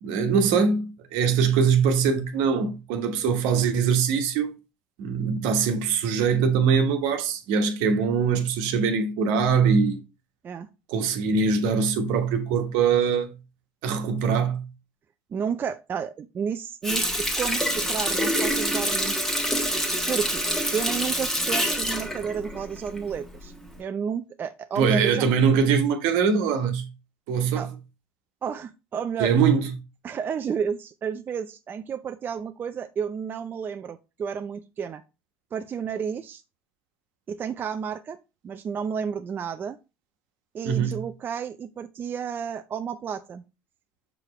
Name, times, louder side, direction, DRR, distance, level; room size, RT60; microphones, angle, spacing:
voice 1, 0.0-4.5 5.0-10.0 10.9-13.3 13.8-14.6 24.8-26.9 27.3-27.7 29.2-29.7 40.6-41.0, right 6 dB, 75° right, 1.3 m, -22 dB
voice 2, 15.3-19.1 20.1-20.4 20.7-23.5 23.8-25.3 27.6-27.7 28.4-29.3 30.0-35.0 35.5-36.4 37.3-38.2 38.4-39.8 40.5-43.4, right 7 dB, 30° right, 0.5 m, -31 dB
Water tap faucet, 16.8-23.2 23.6-23.8, equal, 5° left, 1.3 m, -26 dB
6.3 x 4.8 x 3.1 m
supercardioid pair, 110°, 7 cm